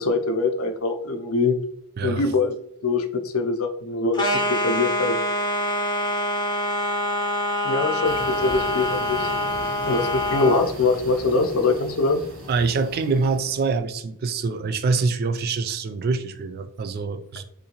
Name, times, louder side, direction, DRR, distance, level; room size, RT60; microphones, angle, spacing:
voice 1, 0.0-1.5 2.0-2.5 2.8-5.2 7.6-9.3 9.8-12.2, left 3 dB, 70° left, 6 dB, 0.5 m, -23 dB
voice 2, 2.0-2.3 12.5-17.4, right 4 dB, 45° right, 9 dB, 0.3 m, -25 dB
sound 1, 4.1-10.7, left 1 dB, 20° left, 0.5 m, -25 dB
sound 2, 8.0-13.8, equal, 90° right, 1.1 m, -38 dB
3.7 x 2.6 x 2.8 m, 0.69 s
head